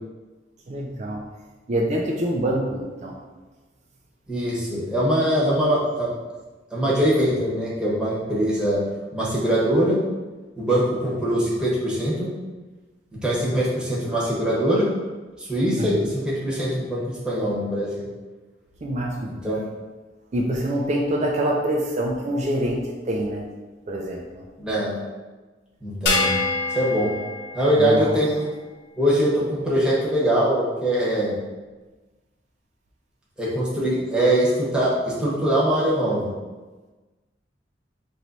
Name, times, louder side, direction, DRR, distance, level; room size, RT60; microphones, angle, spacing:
voice 1, 0.7-1.3 1.7-3.2 15.8-16.0 18.8-19.3 20.3-23.5 23.9-24.5 27.8-28.2, right 1 dB, 40° right, -1 dB, 0.4 m, -25 dB
voice 2, 4.3-6.1 6.7-8.8 9.1-10.0 10.6-12.3 13.1-14.9 15.4-18.1 19.3-19.6 24.6-25.0 25.8-26.3 26.7-27.1 27.5-28.5 29.0-31.4 33.4-36.3, right 1 dB, 5° right, -7 dB, 1.0 m, -22 dB
sound 1, 26.1-28.6, left 3 dB, 65° left, 0.5 m, -26 dB
3.0 x 2.6 x 4.4 m, 1.3 s
head